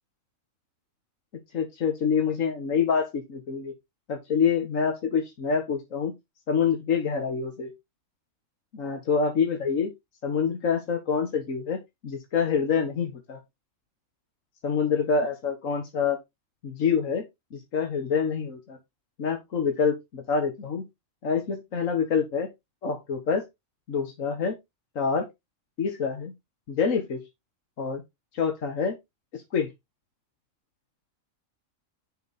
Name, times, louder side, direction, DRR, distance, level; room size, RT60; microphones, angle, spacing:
voice 1, 1.5-3.7 4.1-6.1 6.5-7.7 8.7-9.9 10.2-13.4 14.6-16.2 16.6-17.2 17.5-18.8 19.2-20.8 21.2-22.5 22.8-23.4 23.9-24.6 25.0-25.3 25.8-26.3 26.7-27.2 27.8-28.0 28.3-29.0 29.3-29.7, left 6 dB, 75° left, 1.9 m, -26 dB
10.0 x 5.0 x 4.3 m
omnidirectional pair, 1.4 m